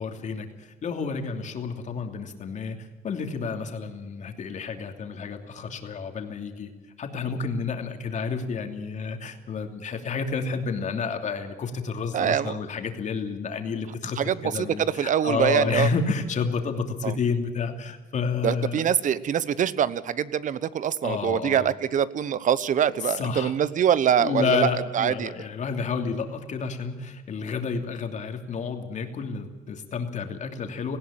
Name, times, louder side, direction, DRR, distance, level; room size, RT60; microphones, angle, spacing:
voice 1, 0.0-6.7 7.0-18.8 21.0-21.7 23.0-23.5 24.2-31.0, left 5 dB, 45° left, 5 dB, 2.9 m, -30 dB
voice 2, 12.1-12.6 14.2-15.9 17.0-17.1 18.4-25.3, right 9 dB, 50° right, 17 dB, 1.0 m, -24 dB
19.0 x 16.0 x 8.8 m, 1.3 s
cardioid pair, 110°, 17 cm